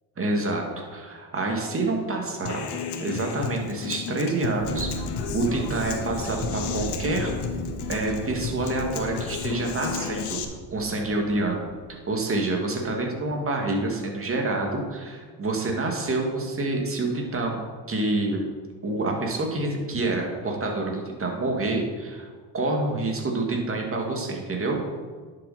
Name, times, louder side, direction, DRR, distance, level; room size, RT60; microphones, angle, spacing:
voice 1, 0.2-2.7 3.0-5.0 5.3-7.3 7.9-10.4 10.7-11.6 11.9-17.6 17.9-18.4 18.8-22.3 22.5-24.8, right 2 dB, 30° right, 1 dB, 2.4 m, -27 dB
Human voice / Acoustic guitar, 2.5-10.4, left 7 dB, 65° left, 1.2 m, -33 dB
sound 1, 4.6-12.4, right 2 dB, 70° right, 1.9 m, -37 dB
11.0 x 7.1 x 4.4 m, 1.5 s
cardioid pair, 90°, 43 cm